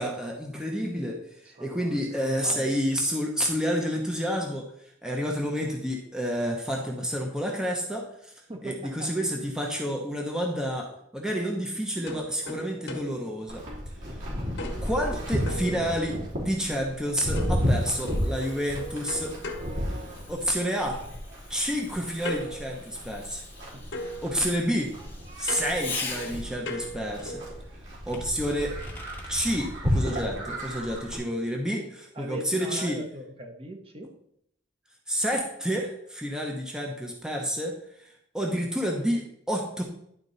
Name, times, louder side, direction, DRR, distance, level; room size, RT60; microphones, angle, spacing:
voice 1, 0.0-4.7 5.0-8.3 8.6-13.6 14.8-19.3 20.3-21.0 21.5-23.4 24.2-24.9 25.4-27.4 28.1-28.8 29.3-33.0 35.1-39.8, equal, 5° right, 0 dB, 0.9 m, -29 dB
voice 2, 1.4-2.8 8.5-9.1 15.1-15.2 15.6-15.7 20.9-21.1 23.7-23.8 32.1-34.1, right 1 dB, 30° right, 3 dB, 1.0 m, -40 dB
sound 1, 12.1-14.2 14.6-16.4 17.4-20.6 22.2-23.6 23.9-27.6, left 1 dB, 65° left, 1.4 m, -40 dB
Livestock farm animals working animals, 13.5-31.2, equal, 70° right, 3.2 m, -33 dB
Fireworks, 16.8-26.7 28.1-29.4, left 4 dB, 10° left, 1.4 m, -43 dB
11.0 x 4.4 x 4.0 m, 0.72 s
head